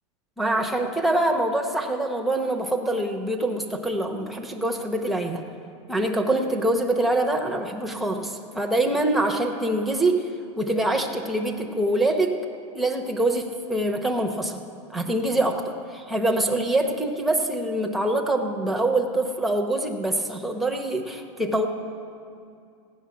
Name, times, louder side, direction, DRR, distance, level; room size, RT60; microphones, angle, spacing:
voice 1, 0.4-5.4 5.9-10.3 10.6-12.4 12.7-14.6 14.9-21.7, right 1 dB, ahead, 2 dB, 0.7 m, -25 dB
15.5 x 6.7 x 9.4 m, 2.4 s
supercardioid pair, 165°, 15 cm